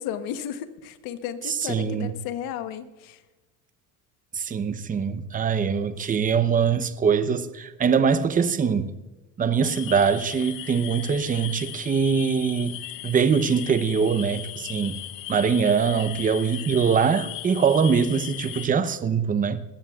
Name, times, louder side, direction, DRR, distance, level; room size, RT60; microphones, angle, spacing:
voice 1, 0.0-3.2, left 9 dB, 80° left, 1.1 m, -34 dB
voice 2, 1.5-2.2 4.3-8.9 9.4-15.0 15.3-19.6, right 6 dB, 25° right, 0.8 m, -23 dB
sound 1, 9.6-18.7, left 14 dB, 65° left, 0.9 m, -38 dB
20.0 x 15.0 x 2.4 m
cardioid pair, 135°, 35 cm